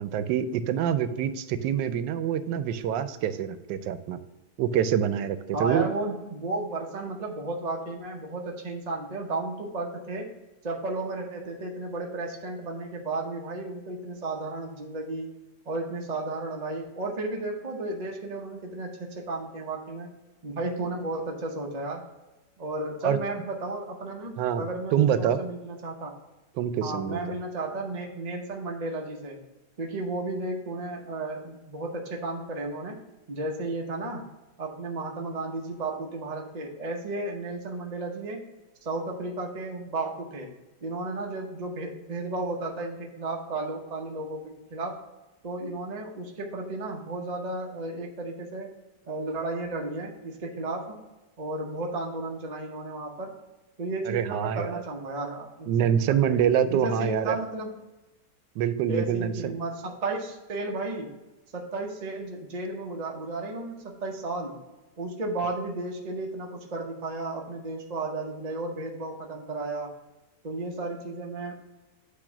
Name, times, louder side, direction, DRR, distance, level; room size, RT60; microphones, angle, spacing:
voice 1, 0.0-4.2 4.6-5.9 23.0-23.2 24.4-24.6 24.9-25.4 26.6-27.2 54.1-54.8 55.7-57.4 58.6-59.6, right 9 dB, 90° right, 12 dB, 1.2 m, -26 dB
voice 2, 5.5-10.3 10.6-15.3 15.7-20.1 20.4-22.1 22.6-26.1 26.8-29.4 29.8-33.0 33.3-34.3 34.6-38.5 38.8-40.5 40.8-45.0 45.4-48.7 49.1-51.0 51.4-53.3 53.8-56.4 56.7-57.7 58.9-61.1 61.5-64.6 65.0-69.9 70.4-71.6, right 2 dB, 40° right, 0 dB, 0.6 m, -33 dB
8.4 x 3.0 x 5.8 m, 1.1 s
omnidirectional pair, 1.9 m